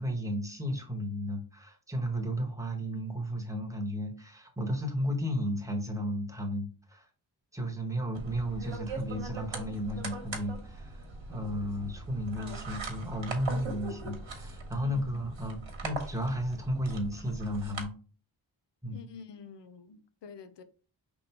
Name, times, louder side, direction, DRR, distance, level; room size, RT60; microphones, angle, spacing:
voice 1, 0.0-7.1 7.5-11.0 11.3-17.9 18.8-19.0, equal, 5° right, 1.3 m, -33 dB
sound 1, 8.1-17.8, right 3 dB, 70° right, 1.3 m, -41 dB
voice 2, 14.8-15.2 18.9-20.6, left 5 dB, 60° left, 0.7 m, -47 dB
5.1 x 3.5 x 3.0 m
wide cardioid pair, 80°, 48 cm